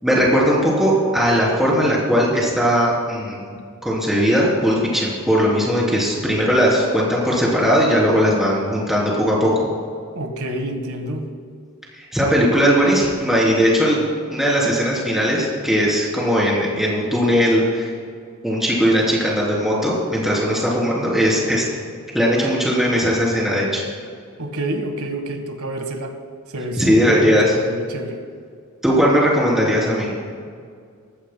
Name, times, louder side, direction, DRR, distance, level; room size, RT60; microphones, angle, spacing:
voice 1, 0.0-3.4 3.8-9.5 12.0-14.0 14.3-17.9 18.4-21.6 22.1-23.8 26.8-27.4 28.8-30.2, equal, ahead, -5 dB, 3.4 m, -18 dB
voice 2, 10.1-11.3 24.4-26.2 26.5-28.2, right 1 dB, 70° right, 5 dB, 1.5 m, -28 dB
20.5 x 14.0 x 2.2 m, 2.1 s
head